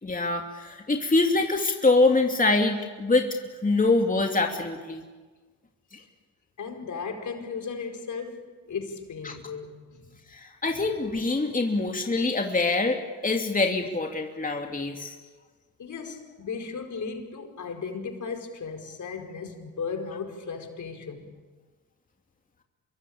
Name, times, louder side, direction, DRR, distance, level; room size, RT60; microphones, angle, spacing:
voice 1, 0.0-3.3 3.6-5.0 9.2-9.3 10.3-15.2, left 3 dB, 25° left, 3.0 m, -24 dB
voice 2, 6.6-10.2 10.7-10.8 15.8-21.4, left 5 dB, 55° left, 4.9 m, -36 dB
26.5 x 23.0 x 8.7 m
supercardioid pair, 60°, 35 cm